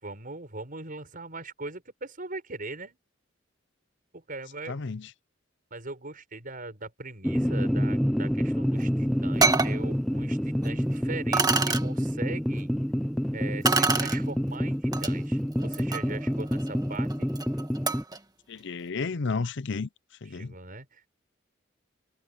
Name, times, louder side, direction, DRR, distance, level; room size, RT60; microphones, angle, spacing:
voice 1, 0.0-3.0 4.1-4.8 5.7-12.7 13.3-17.3 20.3-21.1, right 3 dB, 45° right, 6.9 m, -40 dB
voice 2, 4.7-5.1 18.5-19.9 20.2-20.5, left 4 dB, 65° left, 0.6 m, -32 dB
sound 1, 7.2-18.0, equal, ahead, 0.5 m, -28 dB
sound 2, 8.8-8.9 9.4-9.8 10.6-10.7 11.3-11.8 13.6-14.2 14.9-15.1 15.6-18.2, right 4 dB, 20° right, 1.7 m, -27 dB
head